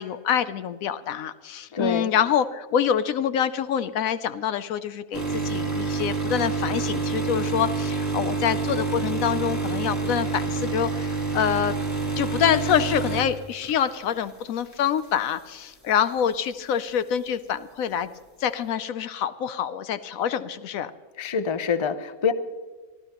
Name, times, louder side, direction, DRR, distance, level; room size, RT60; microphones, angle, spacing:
voice 1, 0.0-11.7 12.2-18.1 18.4-20.9, left 8 dB, 75° left, 13 dB, 1.0 m, -26 dB
voice 2, 1.7-2.1 21.2-22.3, left 6 dB, 35° left, 11 dB, 0.5 m, -25 dB
sound 1, 5.1-14.3 14.7-15.0 15.9-16.0, right 4 dB, 10° left, 1.9 m, -28 dB
24.5 x 13.5 x 2.9 m, 1.4 s
omnidirectional pair, 1.5 m